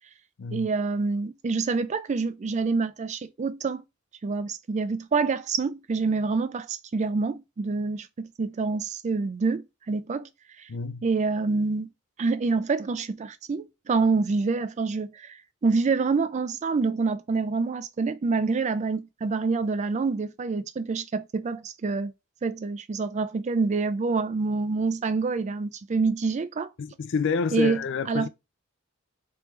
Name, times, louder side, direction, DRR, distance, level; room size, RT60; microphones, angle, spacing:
voice 1, 0.5-3.8 4.2-10.3 10.6-10.7 11.0-11.9 12.2-15.4 15.6-22.1 22.4-26.7 27.5-27.8 28.1-28.3, right 4 dB, 35° right, 0.4 m, -27 dB
voice 2, 10.7-11.0 26.8-28.3, left 5 dB, 60° left, 0.4 m, -28 dB
3.4 x 3.1 x 3.1 m
head